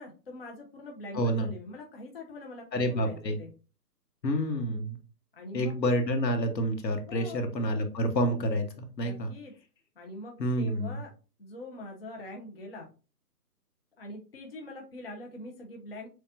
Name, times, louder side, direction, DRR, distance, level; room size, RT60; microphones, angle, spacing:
voice 1, 0.0-3.5 5.3-5.7 7.1-7.4 9.0-9.5 10.0-11.1 11.4-12.9 14.0-16.1, left 1 dB, 35° left, 0 dB, 0.6 m, -43 dB
voice 2, 1.1-1.5 2.7-3.4 4.2-5.0 5.5-9.3 10.4-11.0, equal, 80° left, 6 dB, 1.2 m, -28 dB
6.6 x 2.3 x 2.5 m, 0.35 s
hypercardioid pair, 160°, 50 cm